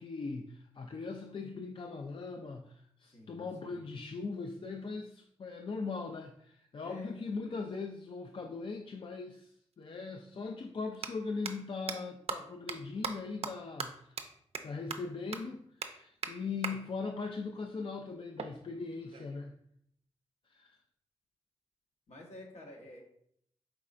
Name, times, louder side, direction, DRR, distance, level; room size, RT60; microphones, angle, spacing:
voice 1, 0.0-14.2 14.6-19.5 20.5-20.7, left 4 dB, 45° left, 3 dB, 0.4 m, -40 dB
voice 2, 3.0-3.8 6.8-7.2 22.1-23.0, left 1 dB, 65° left, -1 dB, 1.1 m, -51 dB
sound 1, 9.7-9.8 10.9-11.1 11.4-11.5 11.9-12.0 12.3-12.4 12.7-12.8 13.0-13.1 13.4-13.5 13.8-13.9 14.2-14.3 14.5-14.6 14.9-15.0 15.3-15.4 15.8-15.9 16.2-16.3 16.6-16.7 18.4-19.4, right 6 dB, 55° right, 0.4 m, -37 dB
4.6 x 3.2 x 2.5 m, 0.68 s
cardioid pair, 45°, 12 cm